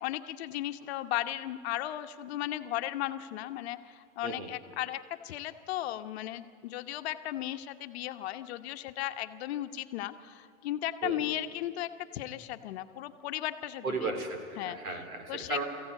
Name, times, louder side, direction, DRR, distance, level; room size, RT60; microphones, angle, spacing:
voice 1, 0.0-14.0 14.6-14.8 15.3-15.6, left 13 dB, 50° left, 8 dB, 1.1 m, -36 dB
voice 2, 13.8-15.6, right 3 dB, 90° right, 6 dB, 3.8 m, -35 dB
23.5 x 15.5 x 8.3 m, 2.4 s
hypercardioid pair, 145°, 42 cm